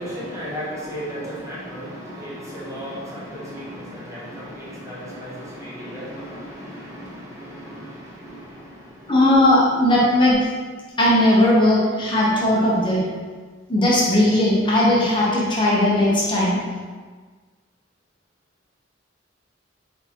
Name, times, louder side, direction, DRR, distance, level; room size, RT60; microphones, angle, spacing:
voice 1, 0.0-9.4, equal, 15° right, -7 dB, 0.8 m, -35 dB
voice 2, 9.1-10.4 11.0-13.0 13.7-16.6, left 1 dB, 25° left, -6 dB, 0.9 m, -17 dB
3.8 x 3.6 x 2.9 m, 1.5 s
head